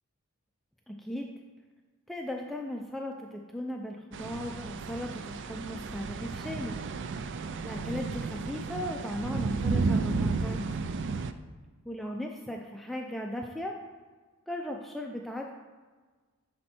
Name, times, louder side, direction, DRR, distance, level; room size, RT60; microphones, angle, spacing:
voice 1, 0.9-1.3 2.1-6.7 7.6-10.6 11.9-13.8 14.5-15.5, left 1 dB, ahead, 1 dB, 0.4 m, -37 dB
sound 1, 4.1-11.3, right 4 dB, 60° right, 0.4 m, -32 dB
10.5 x 4.3 x 4.3 m, 1.4 s
head